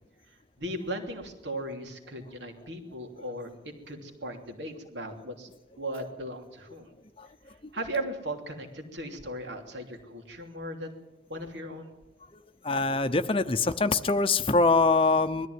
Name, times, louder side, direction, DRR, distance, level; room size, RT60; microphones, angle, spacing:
voice 1, 0.6-5.5 5.8-6.9 7.7-11.0 11.3-11.9, right 1 dB, 80° right, 4 dB, 3.1 m, -37 dB
voice 2, 12.6-15.5, left 3 dB, 30° left, 10 dB, 0.7 m, -24 dB
21.5 x 14.0 x 9.4 m, 1.0 s
head